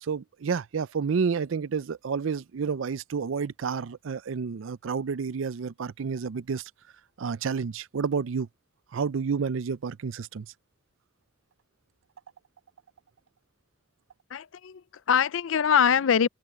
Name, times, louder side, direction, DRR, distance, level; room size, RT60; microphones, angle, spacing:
voice 1, 0.0-6.6 7.2-8.5 8.9-10.5, right 5 dB, 75° right, 0.5 m, -30 dB
voice 2, 14.3-16.3, left 7 dB, 75° left, 0.5 m, -23 dB
open air
head